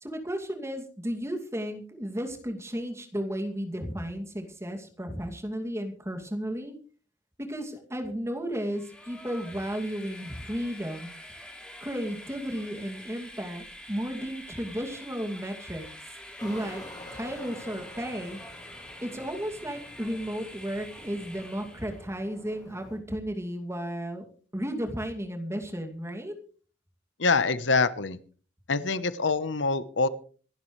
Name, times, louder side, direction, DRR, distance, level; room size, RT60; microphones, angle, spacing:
voice 1, 0.0-6.8 7.5-11.1 11.8-15.9 16.4-16.8 17.1-18.4 19.0-24.3 24.5-26.4, equal, 15° right, 4 dB, 2.4 m, -34 dB
Train, 8.6-22.1, left 1 dB, 5° left, 3.4 m, -46 dB
sound 1, 16.4-23.0, left 1 dB, 20° left, 4.9 m, -48 dB
voice 2, 27.2-28.2 28.7-30.1, left 4 dB, 75° left, 14 dB, 1.0 m, -25 dB
26.5 x 11.5 x 3.2 m, 0.41 s
head